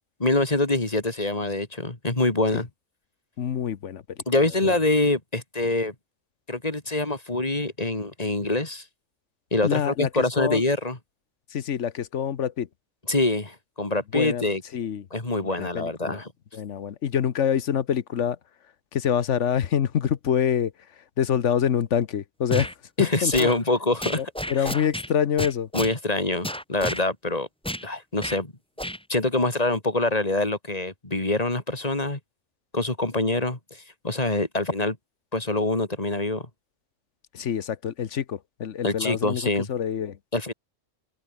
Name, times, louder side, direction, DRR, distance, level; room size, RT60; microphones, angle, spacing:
voice 1, 0.2-2.7 4.3-5.9 6.5-8.8 9.5-11.0 13.1-14.6 15.1-16.3 23.0-24.2 24.6-24.7 25.7-27.5 27.8-28.5 29.1-32.2 32.7-35.0 35.3-36.5 38.8-39.7 40.3-40.5, left 2 dB, 30° left, 3.4 m, -25 dB
voice 2, 3.4-4.0 4.6-4.7 9.6-10.1 10.4-10.6 11.5-12.7 14.1-14.4 14.7-15.0 15.4-16.2 16.5-18.4 18.9-20.7 21.2-22.7 23.0-23.5 24.1-25.7 37.3-39.4 39.7-40.2, left 8 dB, 65° left, 1.2 m, -26 dB
sound 1, 22.5-22.7 23.3-23.6 24.0-25.1 25.4-26.0 26.4-27.0 27.6-27.9 28.2-28.4 28.8-29.0, equal, 5° left, 2.9 m, -31 dB
open air
omnidirectional pair, 1.4 m